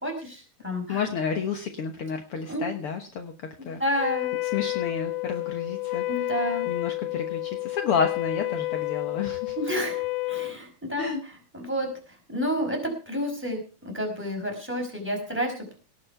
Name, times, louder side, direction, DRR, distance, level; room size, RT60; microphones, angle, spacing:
voice 1, 0.0-1.0 2.5-2.6 3.6-4.3 6.1-6.7 9.6-11.1 11.5-11.9 12.3-13.6 13.9-15.8, equal, 5° right, 2 dB, 4.8 m, -30 dB
voice 2, 0.9-3.8 4.5-6.3 6.7-9.6 11.0-11.2, left 6 dB, 70° left, 5 dB, 1.3 m, -30 dB
Wind instrument woodwind instrument, 4.0-10.6, left 19 dB, 85° left, 1.6 m, -30 dB
18.0 x 7.6 x 5.8 m, 0.37 s
omnidirectional pair, 4.3 m